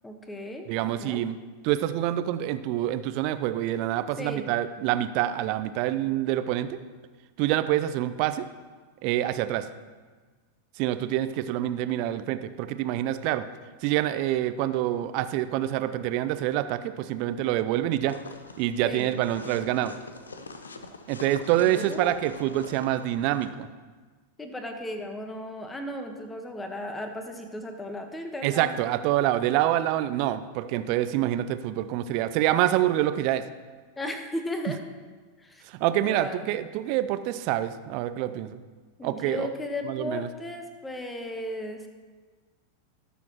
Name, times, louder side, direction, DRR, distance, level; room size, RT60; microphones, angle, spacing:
voice 1, 0.0-0.7 1.0-1.2 4.2-4.5 18.8-19.1 21.6-22.2 24.4-29.0 34.0-34.8 35.4-35.6 36.0-36.5 39.0-41.9, left 1 dB, 10° left, 5 dB, 1.2 m, -35 dB
voice 2, 0.7-1.4 1.6-6.8 7.4-8.4 9.0-9.7 10.8-13.5 13.8-18.2 18.6-19.9 21.1-23.7 28.4-33.4 35.7-38.6 39.0-39.5 39.8-40.3, right 13 dB, 45° right, 12 dB, 0.5 m, -26 dB
sound 1, 18.1-23.5, left 3 dB, 75° left, 0.7 m, -44 dB
18.5 x 7.1 x 3.0 m, 1.4 s
figure-of-eight pair, 90°, 0 cm